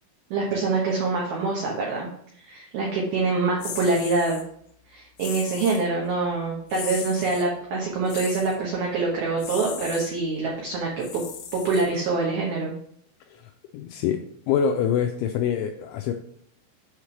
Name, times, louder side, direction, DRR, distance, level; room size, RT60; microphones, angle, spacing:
voice 1, 0.3-2.1 2.4-4.4 4.9-11.2 11.5-12.7, right 3 dB, 80° right, -2 dB, 2.2 m, -25 dB
sound 1, 3.6-4.4 5.2-5.9 6.7-7.5 8.1-8.6 9.4-10.1 11.0-12.2, left 8 dB, 70° left, 2.8 m, -37 dB
voice 2, 13.7-14.2 14.5-16.1, left 8 dB, 90° left, 4 dB, 2.7 m, -25 dB
8.2 x 3.3 x 5.8 m, 0.66 s
omnidirectional pair, 6.0 m